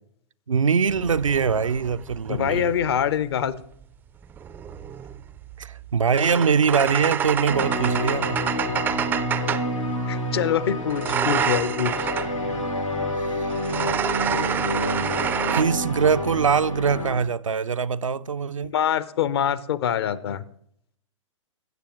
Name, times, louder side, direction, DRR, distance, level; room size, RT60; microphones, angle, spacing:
voice 1, 0.5-2.7 5.6-8.4 13.2-13.5 15.2-18.7, right 6 dB, 80° right, 0.4 m, -23 dB
sound 1, 0.9-3.0 4.2-9.8 10.9-12.4 13.5-15.6, right 8 dB, 10° right, 0.3 m, -28 dB
voice 2, 2.3-3.5 10.1-12.1 18.7-20.4, left 9 dB, 50° left, 0.7 m, -24 dB
sound 2, 7.5-17.2, left 1 dB, 90° left, 2.2 m, -28 dB
16.0 x 6.9 x 3.0 m
figure-of-eight pair, 105°, 16 cm